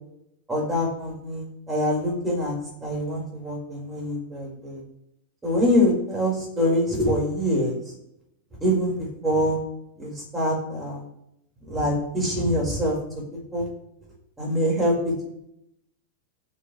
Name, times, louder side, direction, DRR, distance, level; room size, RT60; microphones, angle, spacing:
voice 1, 0.5-2.6 2.8-4.8 5.4-7.8 8.6-9.6 10.0-11.0 11.7-13.0 13.3-13.7 14.4-15.3, equal, 15° right, -2 dB, 4.8 m, -24 dB
17.5 x 6.9 x 3.2 m, 0.78 s
figure-of-eight pair, 90°, 0 cm